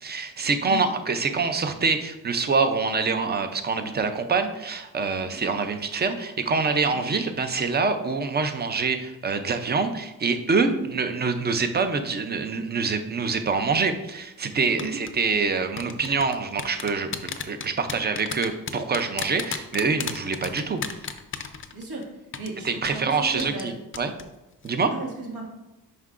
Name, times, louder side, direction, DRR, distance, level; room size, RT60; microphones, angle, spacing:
voice 1, 0.0-20.8 22.6-24.1 24.6-24.9, right 4 dB, 25° right, 8 dB, 0.4 m, -25 dB
sound 1, 14.8-15.1 15.8-22.0 22.3-22.5 22.8-23.0 23.4-23.7 23.9-24.2 24.5-24.7, left 7 dB, 35° left, 0.4 m, -32 dB
voice 2, 21.7-23.7 24.9-25.4, right 3 dB, 80° right, -2 dB, 1.9 m, -35 dB
9.4 x 5.5 x 2.5 m, 0.96 s
wide cardioid pair, 175°, 38 cm